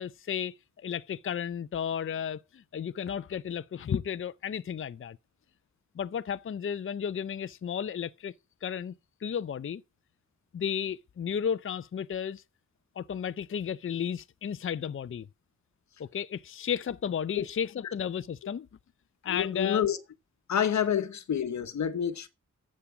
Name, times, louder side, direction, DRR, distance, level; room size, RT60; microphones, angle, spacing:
voice 1, 0.0-5.2 6.0-8.3 8.6-8.9 9.2-9.8 10.5-12.4 13.0-15.3 16.0-18.7 19.2-19.8, left 8 dB, 45° left, 0.6 m, -33 dB
voice 2, 19.3-20.0 20.5-22.3, left 8 dB, 70° left, 1.1 m, -28 dB
11.5 x 7.5 x 4.9 m
cardioid pair, 70°, 30 cm